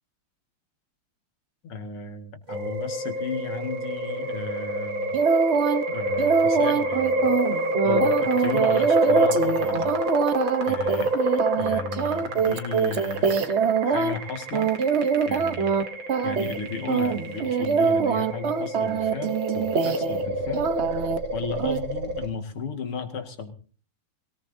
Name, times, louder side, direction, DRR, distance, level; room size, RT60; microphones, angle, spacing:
voice 1, 1.6-5.2 5.9-7.3 7.6-9.9 10.7-11.1 11.6-13.5 13.9-14.7 15.3-15.7 16.2-20.7 21.3-23.5, left 5 dB, 85° left, 6 dB, 2.8 m, -34 dB
sound 1, 2.5-22.3, right 1 dB, 75° right, 3.0 m, -28 dB
sound 2, 5.1-5.8 6.2-14.1 14.5-15.8 16.1-16.6 16.9-20.2 20.5-21.2 21.6-21.8, right 6 dB, 50° right, 0.8 m, -23 dB
23.5 x 18.0 x 2.7 m, 0.40 s
omnidirectional pair, 2.3 m